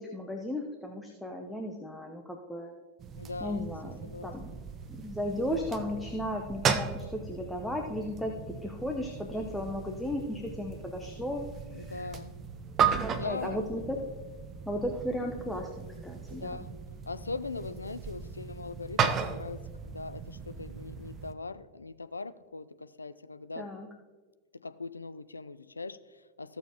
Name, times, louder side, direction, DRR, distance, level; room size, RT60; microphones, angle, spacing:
voice 1, 0.0-2.7 3.4-4.5 5.0-11.5 11.8-12.1 13.0-14.0 14.7-16.7 23.6-23.9, left 1 dB, 5° left, 1 dB, 0.8 m, -35 dB
sound 1, 3.0-21.3, right 6 dB, 30° right, 0.6 m, -36 dB
voice 2, 3.2-4.3 11.7-12.3 13.1-13.9 16.3-16.8 17.1-23.7 24.6-26.6, left 3 dB, 80° left, 13 dB, 0.4 m, -41 dB
15.0 x 6.8 x 2.9 m, 1.4 s
figure-of-eight pair, 90°, 0 cm